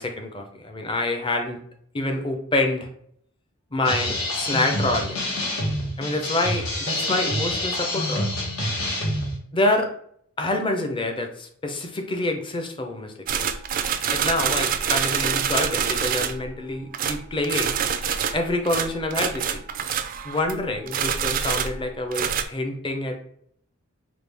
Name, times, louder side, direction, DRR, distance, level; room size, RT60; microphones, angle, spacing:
voice 1, 0.0-1.6 1.9-2.9 3.7-5.2 6.0-8.3 9.5-9.9 10.4-13.4 14.1-17.8 18.3-19.6 20.2-23.2, left 2 dB, 25° left, 4 dB, 0.6 m, -27 dB
sound 1, 3.8-9.4, left 1 dB, 80° left, 1.1 m, -27 dB
sound 2, 13.3-16.5 16.9-20.6 20.9-22.4, right 8 dB, 40° right, 0.3 m, -26 dB
4.9 x 2.2 x 3.3 m, 0.65 s
head